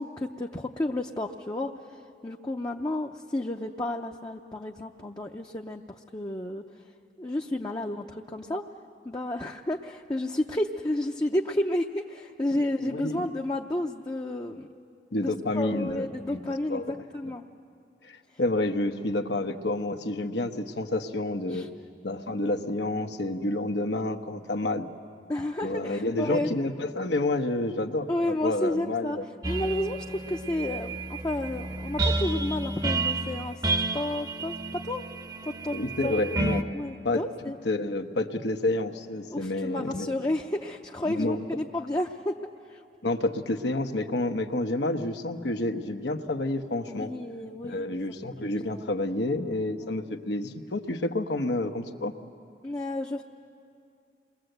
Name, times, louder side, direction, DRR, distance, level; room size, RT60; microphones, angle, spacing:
voice 1, 0.0-6.6 7.2-8.6 9.0-14.7 15.1-17.4 21.5-21.7 25.3-26.5 28.1-29.2 29.5-33.6 33.9-34.6 34.8-35.0 35.6-35.7 36.0-36.1 36.7-37.6 39.3-42.3 42.7-42.8 46.9-48.0 48.2-48.9 49.8-50.1 52.6-53.2, left 1 dB, 20° left, 1 dB, 0.6 m, -31 dB
voice 2, 12.8-13.2 15.1-16.9 18.1-21.7 22.0-24.9 25.6-29.3 35.7-36.6 37.0-40.1 41.0-41.4 43.0-47.1 47.6-52.1, left 2 dB, 85° left, 6 dB, 1.1 m, -29 dB
sound 1, 29.4-36.6, right 2 dB, 20° right, 0.8 m, -30 dB
28.0 x 21.5 x 8.0 m, 2.5 s
head